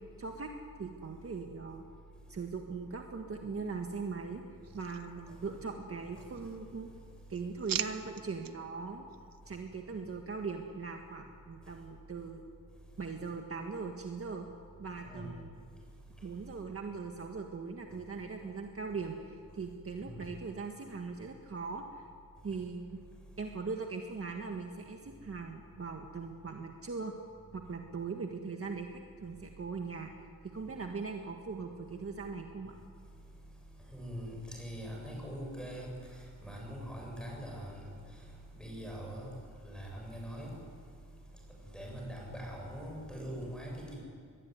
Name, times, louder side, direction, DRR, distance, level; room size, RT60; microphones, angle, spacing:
voice 1, 0.2-0.5 0.8-1.8 2.3-4.4 4.7-6.9 7.3-9.1 9.5-12.4 13.0-14.5 14.8-15.5 16.2-22.1 22.4-23.0 23.4-27.1 27.5-30.1 30.4-32.8, right 4 dB, 40° right, 3 dB, 1.7 m, -40 dB
sound 1, 4.6-5.7 6.1-6.8 7.1-8.5 9.1-9.4, right 9 dB, 75° right, 1.0 m, -41 dB
voice 2, 33.9-35.9 36.4-37.8 38.6-39.3 39.6-40.5 41.7-43.9, equal, ahead, -1 dB, 7.9 m, -42 dB
24.0 x 20.5 x 9.6 m, 2.2 s
wide cardioid pair, 155°, 34 cm